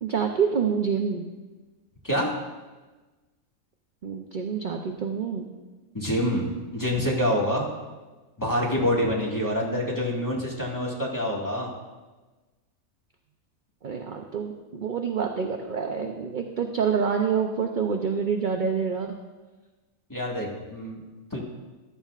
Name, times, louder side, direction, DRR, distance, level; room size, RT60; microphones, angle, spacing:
voice 1, 0.0-1.3 4.0-5.5 13.8-19.2, right 6 dB, 50° right, 3 dB, 0.6 m, -27 dB
voice 2, 5.9-7.7 8.4-11.7 20.1-21.0 21.3-21.4, equal, 15° left, -4 dB, 1.9 m, -26 dB
14.5 x 11.5 x 2.5 m, 1.2 s
omnidirectional pair, 1.5 m